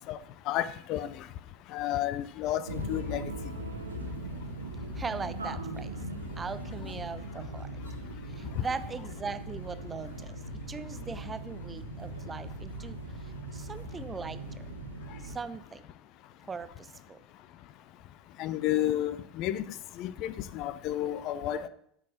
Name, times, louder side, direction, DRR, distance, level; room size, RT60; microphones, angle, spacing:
voice 1, 0.5-1.3 1.7-3.3 18.4-19.6 20.0-21.7, left 12 dB, 50° left, 15 dB, 0.5 m, -31 dB
sound 1, 2.6-15.4, right 1 dB, 80° right, 1.1 m, -40 dB
voice 2, 4.9-6.0 6.4-7.7 8.3-10.4 10.7-14.7 15.2-15.8 16.4-17.2, right 5 dB, 20° right, 13 dB, 0.6 m, -40 dB
8.2 x 6.4 x 6.3 m, 0.71 s
figure-of-eight pair, 75°, 0 cm